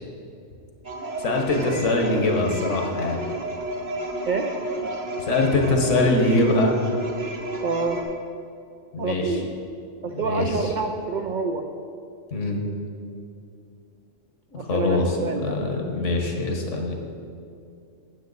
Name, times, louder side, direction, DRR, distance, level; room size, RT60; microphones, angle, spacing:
sound 1, 0.8-8.0, right 2 dB, 40° right, 1.0 m, -32 dB
voice 1, 1.2-3.2 5.2-6.7 8.9-9.4 10.2-10.7 12.3-12.6 14.5-16.9, left 2 dB, 70° left, 2 dB, 1.4 m, -23 dB
voice 2, 7.6-8.0 9.0-9.5 10.0-11.7 14.6-15.5, right 4 dB, 75° right, 5 dB, 0.4 m, -27 dB
9.0 x 7.6 x 4.0 m, 2.5 s
omnidirectional pair, 1.3 m